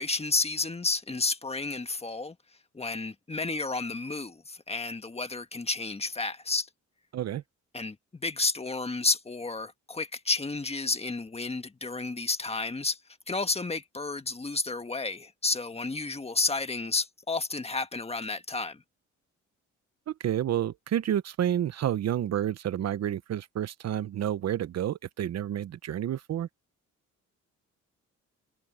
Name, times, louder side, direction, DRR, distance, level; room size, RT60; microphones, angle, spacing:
voice 1, 0.0-2.3 2.7-6.7 7.7-13.0 13.3-18.8, left 3 dB, 20° left, 1.5 m, -31 dB
voice 2, 20.1-26.5, right 11 dB, 60° right, 0.9 m, -30 dB
cardioid pair, 90°, 30 cm